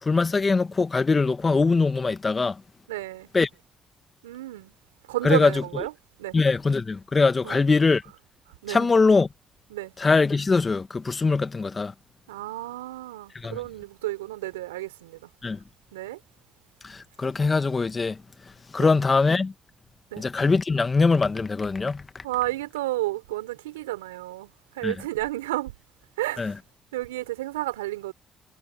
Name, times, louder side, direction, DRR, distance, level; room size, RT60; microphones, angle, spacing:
voice 1, 0.0-2.6 3.3-3.5 5.2-5.5 6.3-8.0 8.7-9.3 10.0-11.9 13.4-13.6 15.4-15.6 16.8-18.2 18.7-19.5 20.2-22.2 24.8-24.9 26.4-26.5, left 4 dB, 35° left, 1.9 m, -22 dB
voice 2, 2.9-3.3 4.2-4.7 5.0-5.9 6.2-6.4 7.4-7.6 8.6-8.9 9.7-9.9 12.3-15.3 15.9-16.2 18.7-18.9 20.1-20.3 22.2-25.7 26.2-26.5 26.9-28.1, right 17 dB, 85° right, 3.8 m, -31 dB
hypercardioid pair, 45°, 0 cm